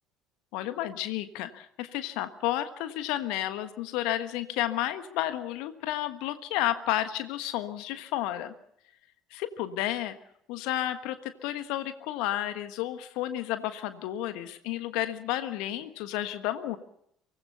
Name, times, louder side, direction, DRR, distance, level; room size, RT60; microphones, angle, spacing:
voice 1, 0.5-8.5 9.3-10.2 10.5-16.8, left 13 dB, 65° left, 10 dB, 1.4 m, -31 dB
24.0 x 19.5 x 5.7 m, 0.71 s
figure-of-eight pair, 60°, 0 cm